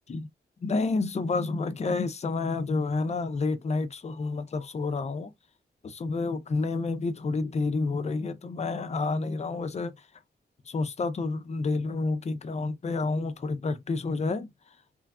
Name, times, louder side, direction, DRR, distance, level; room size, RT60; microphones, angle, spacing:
voice 1, 0.6-5.3 5.8-9.9 10.7-14.5, left 3 dB, 35° left, 0.5 m, -29 dB
3.0 x 2.3 x 2.3 m
cardioid pair, 85°, 18 cm